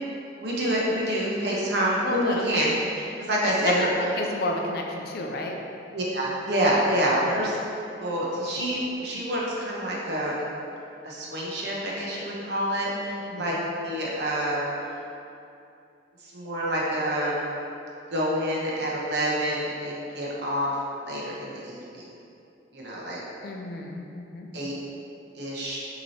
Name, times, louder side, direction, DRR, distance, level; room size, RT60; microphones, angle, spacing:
voice 1, 0.4-2.7 3.0-3.9 5.9-7.6 8.0-10.5 11.0-14.7 16.2-17.5 18.1-20.8 21.0-22.1 22.7-23.2 24.5-24.7 25.4-25.8, equal, 60° right, -5 dB, 0.9 m, -27 dB
voice 2, 2.0-2.7 3.3-5.6 7.2-7.4 13.2-13.6 23.4-24.5, left 2 dB, 55° left, 1 dB, 0.4 m, -31 dB
6.0 x 3.0 x 2.8 m, 2.7 s
head